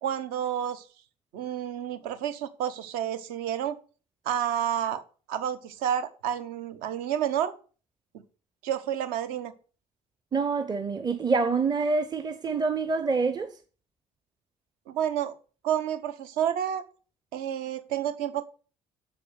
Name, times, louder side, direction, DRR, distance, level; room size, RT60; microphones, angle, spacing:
voice 1, 0.0-0.9 1.3-3.8 4.2-5.0 5.3-7.5 8.6-9.5 14.9-15.3 15.6-16.9 17.3-18.4, right 10 dB, 60° right, 1.0 m, -30 dB
voice 2, 10.3-13.6, right 4 dB, 25° right, 0.9 m, -26 dB
8.2 x 6.4 x 8.0 m
figure-of-eight pair, 50°, 17 cm